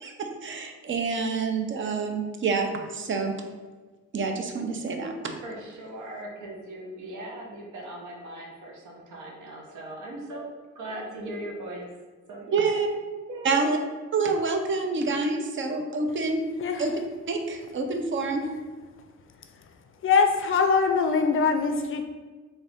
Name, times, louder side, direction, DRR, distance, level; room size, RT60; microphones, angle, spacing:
voice 1, 0.0-3.3 4.1-5.3 12.5-12.9 13.4-13.8 14.1-16.4 16.8-17.0 17.3-18.5, right 4 dB, 40° right, 5 dB, 0.6 m, -27 dB
voice 2, 5.4-10.5 10.7-11.9 12.3-13.0 13.3-13.7, right 1 dB, 75° right, 0 dB, 0.9 m, -39 dB
voice 3, 20.0-22.0, left 5 dB, 45° left, 6 dB, 0.4 m, -22 dB
3.6 x 2.6 x 3.5 m, 1.3 s
cardioid pair, 90°, 30 cm